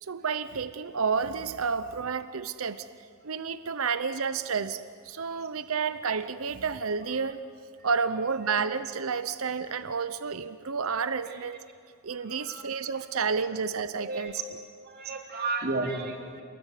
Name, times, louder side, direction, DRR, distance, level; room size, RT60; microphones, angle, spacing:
voice 1, 0.0-2.9 3.2-7.4 7.8-11.6 12.0-14.3, right 5 dB, 70° right, 12 dB, 0.8 m, -30 dB
voice 2, 8.2-8.5 11.2-11.4 12.2-12.7 12.9-13.1 14.0-14.4 14.8-16.4, right 3 dB, 45° right, 2 dB, 3.7 m, -34 dB
28.5 x 20.5 x 10.0 m, 2.3 s
head